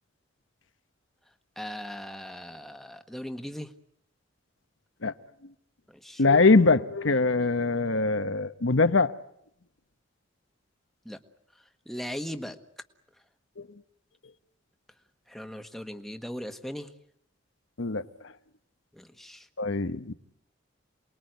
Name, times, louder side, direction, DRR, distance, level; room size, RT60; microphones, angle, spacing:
voice 1, 1.6-3.7 5.9-6.2 11.0-11.2 11.9-12.6 15.3-16.9 19.0-19.5, equal, ahead, 1.4 m, -38 dB
voice 2, 6.2-9.1 17.8-18.0 19.6-20.1, left 3 dB, 70° left, 1.0 m, -22 dB
28.5 x 21.0 x 9.3 m
head